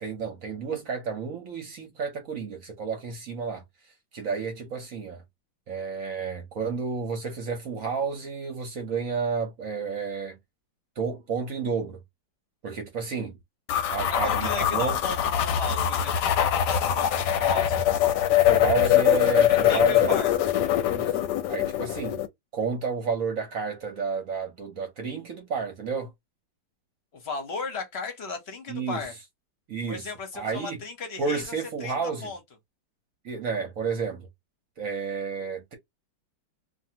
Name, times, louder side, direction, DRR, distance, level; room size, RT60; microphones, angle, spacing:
voice 1, 0.0-3.6 4.1-5.2 5.7-10.4 11.0-12.0 12.6-13.4 13.9-15.0 18.4-20.2 20.9-21.1 21.5-22.2 22.5-26.1 28.7-29.0 29.7-30.0 30.3-30.8 31.2-32.3 33.2-34.3 34.8-35.7, right 5 dB, 60° right, 1.0 m, -31 dB
sound 1, 13.7-22.3, left 11 dB, 75° left, 1.1 m, -23 dB
voice 2, 14.1-15.2 15.4-17.8 19.5-20.3 27.1-29.2 29.9-32.4, left 4 dB, 45° left, 0.8 m, -35 dB
2.6 x 2.6 x 2.7 m
omnidirectional pair, 2.0 m